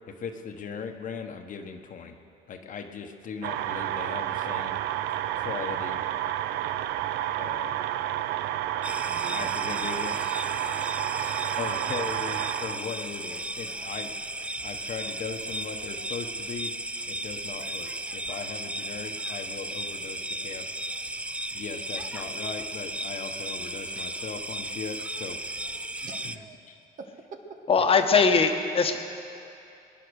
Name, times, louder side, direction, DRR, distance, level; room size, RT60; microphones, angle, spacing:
voice 1, 0.1-2.2 2.5-4.8 5.3-6.1 7.4-7.8 9.3-10.3 11.6-14.1 14.6-16.7 17.1-20.7 21.5-25.4 25.6-25.8 26.2-26.4 26.7-26.8, left 6 dB, 50° left, 5 dB, 1.2 m, -38 dB
sound 1, 3.4-12.8, right 12 dB, 85° right, 0.5 m, -30 dB
sound 2, 8.8-26.4, right 1 dB, 5° right, 0.4 m, -35 dB
voice 2, 9.1-9.5 10.7-11.4 26.0-26.6 27.0-27.4, right 5 dB, 50° right, 4 dB, 1.6 m, -45 dB
voice 3, 27.7-29.0, left 5 dB, 35° left, 5 dB, 1.3 m, -21 dB
21.0 x 9.9 x 6.4 m, 2.7 s
cardioid pair, 110°, 17 cm